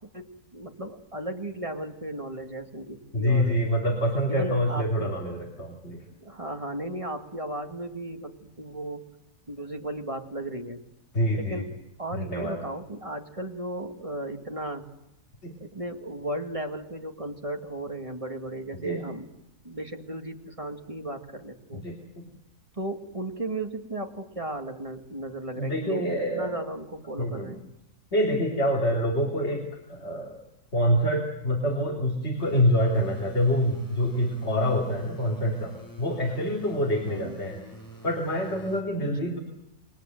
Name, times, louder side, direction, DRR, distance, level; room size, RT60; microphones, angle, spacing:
voice 1, 0.1-3.6 4.3-5.1 6.2-9.0 9.5-10.8 11.4-11.7 12.0-14.9 15.6-19.3 19.6-21.8 22.7-27.6 37.1-37.4 39.1-39.4, right 1 dB, 20° right, 4 dB, 1.9 m, -35 dB
voice 2, 3.1-6.0 11.1-11.6 12.1-12.6 15.4-15.5 18.7-19.0 21.7-22.3 25.5-26.5 27.2-27.5 28.1-30.4 30.7-37.6 38.0-39.4, equal, 45° left, 1 dB, 3.4 m, -26 dB
sound 1, 32.4-38.8, right 1 dB, 10° left, 5.3 m, -47 dB
28.0 x 22.5 x 7.8 m, 0.86 s
omnidirectional pair, 1.6 m